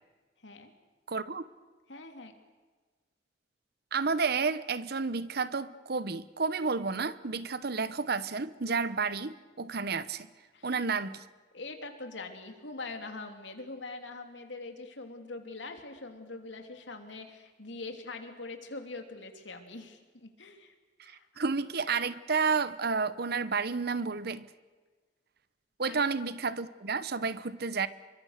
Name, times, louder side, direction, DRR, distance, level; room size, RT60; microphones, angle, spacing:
voice 1, 1.1-1.4 3.9-10.3 10.6-11.2 21.0-24.5 25.8-27.9, right 4 dB, 60° right, 1.0 m, -31 dB
voice 2, 1.9-2.3 10.5-10.7 11.5-20.7 21.0-21.3 25.8-26.0, left 3 dB, 75° left, 3.0 m, -43 dB
27.5 x 24.0 x 6.6 m
head